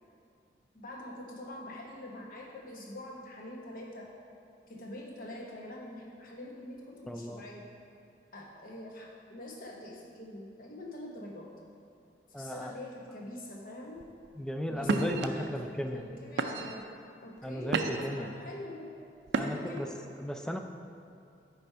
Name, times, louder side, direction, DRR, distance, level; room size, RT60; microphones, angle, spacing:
voice 1, 0.7-4.1 4.7-7.7 8.3-11.5 12.3-14.0 14.7-16.9 17.2-18.9 19.3-20.0, left 1 dB, 50° left, -1 dB, 1.0 m, -44 dB
voice 2, 7.1-7.4 12.3-12.7 14.4-16.0 17.4-18.3 19.4-19.9 20.2-20.6, equal, 5° left, 4 dB, 0.3 m, -36 dB
sound 1, 14.0-14.3 14.8-15.3 15.9-16.1 16.4-16.9 17.4-18.2 19.3-19.8, right 4 dB, 75° right, 0.4 m, -31 dB
9.1 x 3.5 x 4.5 m, 2.5 s
head